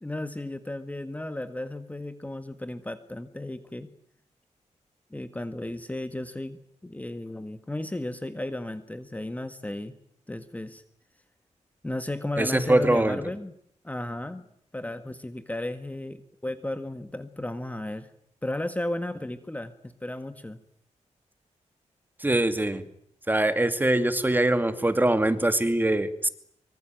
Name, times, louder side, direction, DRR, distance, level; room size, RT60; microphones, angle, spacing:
voice 1, 0.0-3.9 5.1-9.9 10.3-10.8 11.8-13.5 13.8-14.4 14.7-18.1 18.4-20.6, left 1 dB, 10° left, 10 dB, 1.7 m, -34 dB
voice 2, 12.4-13.2 22.2-22.8 23.3-26.3, right 1 dB, 15° right, 10 dB, 2.4 m, -23 dB
25.0 x 24.5 x 9.2 m, 0.69 s
wide cardioid pair, 105°, 12 cm